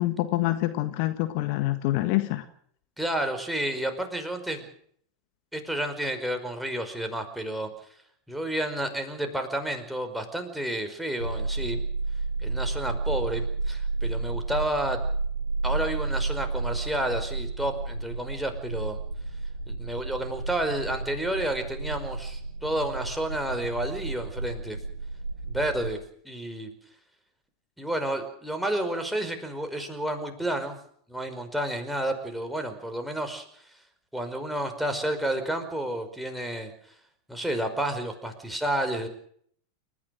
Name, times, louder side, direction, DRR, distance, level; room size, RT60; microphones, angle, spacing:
voice 1, 0.0-2.4, left 16 dB, 50° left, 10 dB, 1.6 m, -26 dB
voice 2, 3.0-4.7 5.5-7.7 8.3-11.8 12.4-15.0 15.6-19.0 19.7-24.8 25.5-26.0 26.2-26.7 27.8-30.7 31.1-33.6 34.1-36.7 37.3-39.1, right 1 dB, ahead, 5 dB, 5.0 m, -30 dB
sound 1, 11.2-25.9, right 3 dB, 85° right, 2.9 m, -32 dB
29.5 x 14.5 x 6.5 m, 0.64 s
figure-of-eight pair, 85°, 0 cm